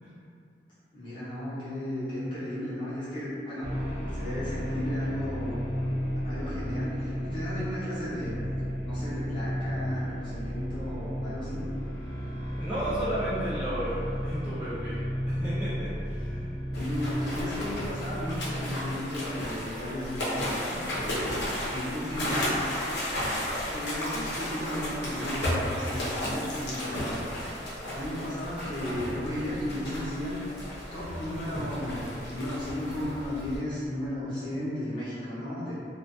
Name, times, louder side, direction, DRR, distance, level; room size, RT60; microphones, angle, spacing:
voice 1, 0.9-3.7 4.1-5.6 6.2-8.4 8.8-11.6 16.7-21.2 21.7-22.5 23.5-27.2 27.9-30.4 30.9-35.7, left 1 dB, 25° left, -12 dB, 0.8 m, -34 dB
sound 1, 3.6-19.5, equal, 40° right, 0.7 m, -33 dB
voice 2, 12.5-15.0 15.3-16.6, right 1 dB, 10° right, -15 dB, 0.5 m, -33 dB
sound 2, 16.7-33.6, equal, 70° left, 0.6 m, -33 dB
2.5 x 2.2 x 2.4 m, 2.4 s
head